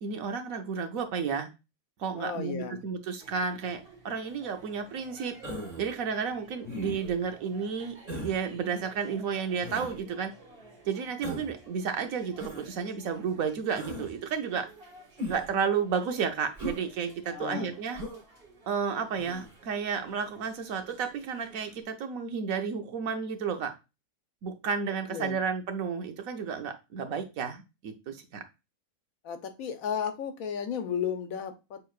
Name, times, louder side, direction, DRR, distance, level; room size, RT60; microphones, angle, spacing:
voice 1, 0.0-1.5 2.0-5.3 5.8-10.3 10.8-14.7 15.3-18.0 18.7-23.7 24.4-28.4, right 6 dB, 70° right, 7 dB, 1.2 m, -32 dB
voice 2, 2.1-2.8 17.3-17.7 25.1-25.4 29.2-31.8, left 7 dB, 75° left, 8 dB, 1.2 m, -34 dB
sound 1, 3.2-21.8, right 2 dB, 40° right, 1.6 m, -54 dB
Human voice, 5.4-5.9 6.6-7.2 8.1-8.4 9.6-10.0 11.2-11.6 12.4-12.7 13.8-14.1 15.2-15.5 16.6-16.8 17.9-18.2 19.2-19.5, equal, 25° right, 2.2 m, -38 dB
6.8 x 3.3 x 2.4 m, 0.26 s
omnidirectional pair, 1.5 m